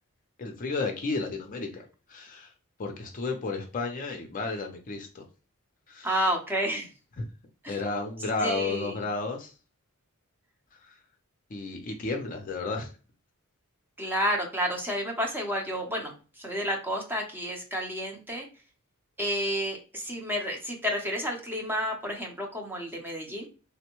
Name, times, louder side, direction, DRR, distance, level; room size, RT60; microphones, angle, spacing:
voice 1, 0.4-2.5 2.8-5.2 5.9-6.1 7.2-7.3 7.7-9.5 11.5-12.9, left 3 dB, 35° left, 3 dB, 0.5 m, -32 dB
voice 2, 6.0-6.9 7.6-7.8 8.4-9.0 14.0-18.5 19.2-23.5, equal, 10° right, 0 dB, 0.7 m, -30 dB
3.4 x 2.1 x 2.9 m, 0.34 s
head